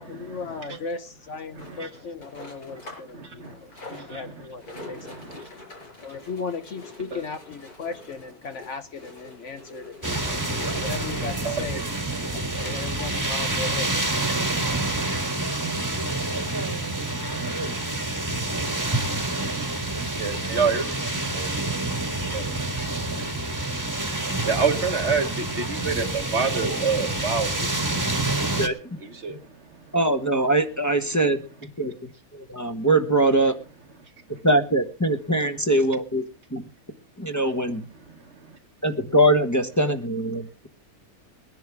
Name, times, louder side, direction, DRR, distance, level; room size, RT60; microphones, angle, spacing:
voice 1, 0.0-3.7 4.1-5.2 6.0-11.8 12.3-13.9, left 4 dB, 55° left, 1.2 m, -36 dB
voice 2, 1.5-1.9 3.1-3.5 3.9-4.4 4.7-5.4 7.1-7.2 11.4-11.6 12.3-12.7 16.9-17.6 18.3-21.0 21.3-22.8 24.0-28.5 29.0-29.4, right 5 dB, 50° right, 1.5 m, -30 dB
sound 1, 1.6-3.1 3.4-11.6 12.3-12.4 12.6-12.7 13.2-13.3, left 2 dB, 85° left, 5.8 m, -45 dB
sound 2, 10.0-28.7, right 2 dB, 15° right, 1.5 m, -27 dB
voice 3, 29.9-31.4 31.8-33.5 34.4-36.2 36.5-36.6 37.2-37.8 38.8-40.7, right 1 dB, 10° left, 1.1 m, -22 dB
22.0 x 10.5 x 3.5 m
omnidirectional pair, 1.6 m